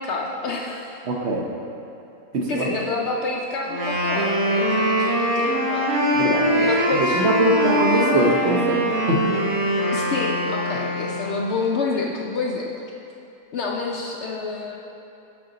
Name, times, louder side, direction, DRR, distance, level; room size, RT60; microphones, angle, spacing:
voice 1, 0.0-1.0 2.5-6.0 6.5-7.2 9.9-12.7 13.5-14.8, left 3 dB, 65° left, -1 dB, 0.7 m, -28 dB
voice 2, 1.1-1.5 2.3-2.7 6.1-6.6 7.1-9.4, right 1 dB, 55° right, 0 dB, 1.0 m, -22 dB
Wind instrument woodwind instrument, 3.7-11.4, equal, 70° right, 1.6 m, -22 dB
7.7 x 5.6 x 3.9 m, 2.9 s
omnidirectional pair, 1.6 m